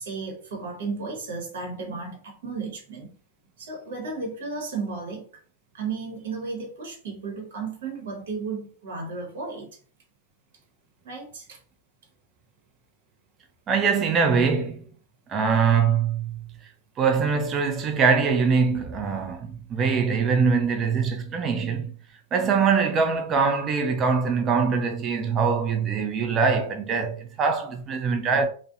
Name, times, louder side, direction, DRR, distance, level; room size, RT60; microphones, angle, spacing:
voice 1, 0.0-3.1 3.6-5.2 5.7-9.7 11.0-11.6, right 4 dB, 70° right, 1.0 m, -34 dB
voice 2, 13.7-14.9 15.3-16.4 17.0-21.9 22.3-28.5, right 5 dB, 30° right, 0.5 m, -23 dB
2.5 x 2.1 x 2.4 m
hypercardioid pair, 100°, 0 cm